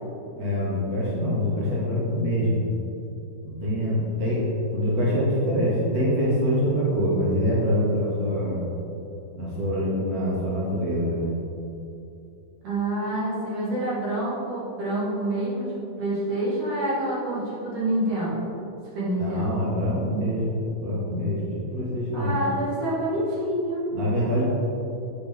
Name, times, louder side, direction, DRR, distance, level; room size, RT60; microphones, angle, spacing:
voice 1, 0.3-2.7 3.4-4.4 4.7-8.6 9.3-11.3 19.2-22.4 23.9-24.4, equal, 35° right, -7 dB, 1.5 m, -25 dB
voice 2, 12.6-18.5 18.9-19.5 22.1-23.8, right 1 dB, 55° right, -8 dB, 3.4 m, -27 dB
8.5 x 8.0 x 3.6 m, 2.8 s
omnidirectional pair, 4.5 m